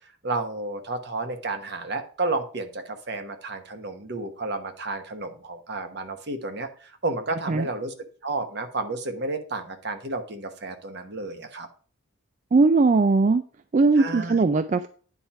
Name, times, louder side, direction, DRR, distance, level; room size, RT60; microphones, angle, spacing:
voice 1, 0.2-7.9 8.2-11.7 14.0-14.4, right 2 dB, 50° right, 7 dB, 1.1 m, -31 dB
voice 2, 12.5-13.4 13.7-14.9, right 3 dB, 35° right, 11 dB, 0.3 m, -19 dB
9.6 x 4.4 x 5.6 m, 0.41 s
head